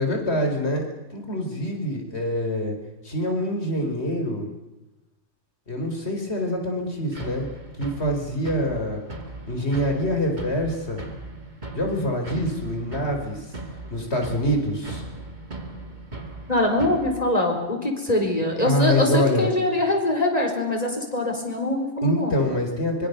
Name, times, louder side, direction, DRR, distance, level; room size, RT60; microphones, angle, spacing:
voice 1, 0.0-2.8 3.0-4.5 5.7-7.5 7.8-9.0 9.5-11.0 11.7-13.5 13.9-15.0 18.7-19.5 22.0-23.1, left 1 dB, 55° left, 3 dB, 4.8 m, -25 dB
sound 1, 7.1-17.2, right 2 dB, 35° right, 2.8 m, -38 dB
voice 2, 16.5-22.4, left 1 dB, 30° left, 2 dB, 4.7 m, -23 dB
25.0 x 23.5 x 6.8 m, 1.0 s
omnidirectional pair, 1.3 m